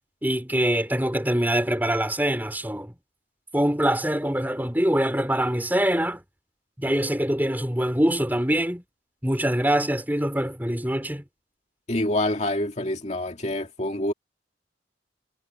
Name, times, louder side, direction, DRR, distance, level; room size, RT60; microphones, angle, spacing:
voice 1, 0.2-2.9 3.5-6.2 6.8-8.8 9.2-11.2, right 1 dB, 10° right, 4.9 m, -24 dB
voice 2, 11.9-14.1, left 1 dB, 40° left, 2.2 m, -26 dB
head